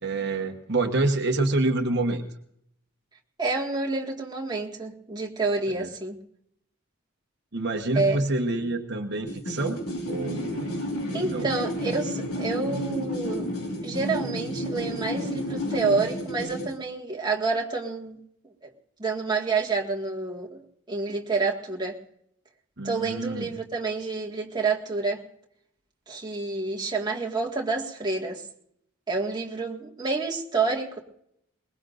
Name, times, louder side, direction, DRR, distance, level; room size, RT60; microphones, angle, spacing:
voice 1, 0.0-2.2 5.7-5.9 7.5-9.8 10.1-10.7 11.3-11.5 22.8-23.5, right 2 dB, 50° right, 4 dB, 1.2 m, -27 dB
voice 2, 3.4-6.2 7.9-8.2 11.1-13.5 13.8-18.2 18.6-18.7 19.0-22.0 22.8-25.2 26.1-28.5 29.1-31.0, right 4 dB, 20° right, 0 dB, 1.8 m, -28 dB
sound 1, 9.3-16.8, left 1 dB, 85° left, 4.5 m, -31 dB
22.5 x 21.0 x 2.6 m, 0.74 s
head